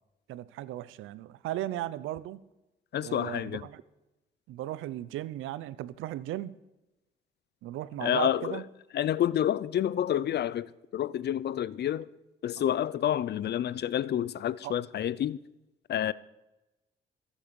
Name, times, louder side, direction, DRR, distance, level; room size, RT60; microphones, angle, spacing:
voice 1, 0.3-2.4 3.0-3.8 4.5-6.5 7.6-8.6 14.6-14.8, right 14 dB, 90° right, 0.7 m, -36 dB
voice 2, 2.9-3.6 8.0-8.6 8.9-12.1 12.4-15.4 15.9-16.1, left 10 dB, 55° left, 0.6 m, -29 dB
14.5 x 8.5 x 6.9 m
cardioid pair, 90°, 20 cm